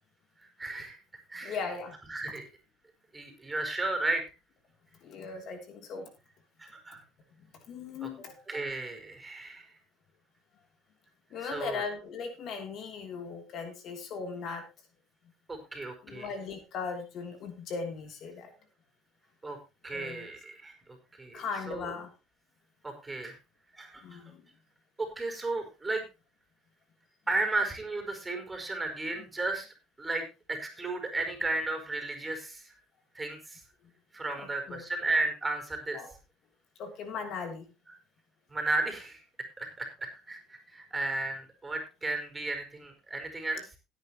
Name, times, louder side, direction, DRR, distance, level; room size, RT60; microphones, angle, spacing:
voice 1, 0.6-1.0 1.3-1.6 2.1-2.4 3.1-4.2 6.6-7.0 8.0-8.1 8.5-9.7 11.4-11.8 15.5-16.3 19.4-19.6 19.8-20.7 21.1-21.9 22.8-23.3 23.8-24.2 25.0-26.0 27.3-29.7 30.0-32.7 33.1-33.6 34.1-36.0 38.5-39.2 39.6-43.7, right 2 dB, 15° right, 5 dB, 4.8 m, -34 dB
voice 2, 1.4-2.0 5.0-6.1 7.7-8.3 11.3-14.6 16.0-18.5 19.9-20.3 21.3-22.1 24.0-24.4 34.4-34.8 35.9-36.1 36.8-37.7, left 5 dB, 55° left, 5 dB, 3.0 m, -38 dB
16.5 x 9.5 x 3.0 m, 0.28 s
supercardioid pair, 90°, 0 cm